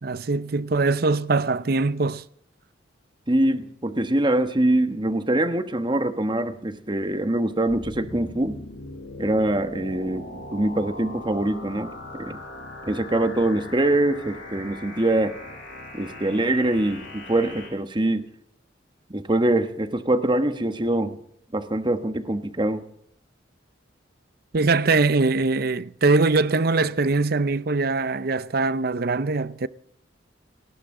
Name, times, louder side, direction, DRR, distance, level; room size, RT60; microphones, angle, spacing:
voice 1, 0.0-2.2 24.5-29.7, right 3 dB, 55° right, 0.6 m, -22 dB
voice 2, 3.3-8.6 9.2-11.9 12.2-12.4 12.8-15.3 15.9-18.2 19.1-21.2 21.5-22.8, right 1 dB, 25° right, 1.2 m, -23 dB
sound 1, 7.7-17.7, left 1 dB, 85° left, 6.3 m, -40 dB
29.5 x 11.5 x 3.8 m
head